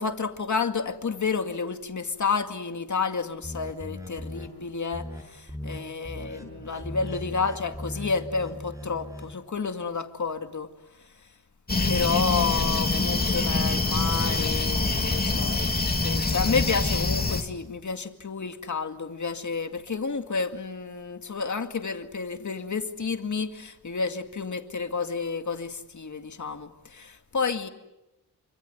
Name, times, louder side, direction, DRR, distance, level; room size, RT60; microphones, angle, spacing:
voice 1, 0.0-10.7 11.0-11.1 11.8-27.7, left 5 dB, 45° left, 2.2 m, -30 dB
sound 1, 3.4-4.5 4.9-5.2 5.5-5.8 6.0-9.3, left 1 dB, 10° right, 7.5 m, -38 dB
sound 2, 11.7-17.4, left 3 dB, 25° left, 2.9 m, -25 dB
28.0 x 25.5 x 8.0 m
wide cardioid pair, 125°, 39 cm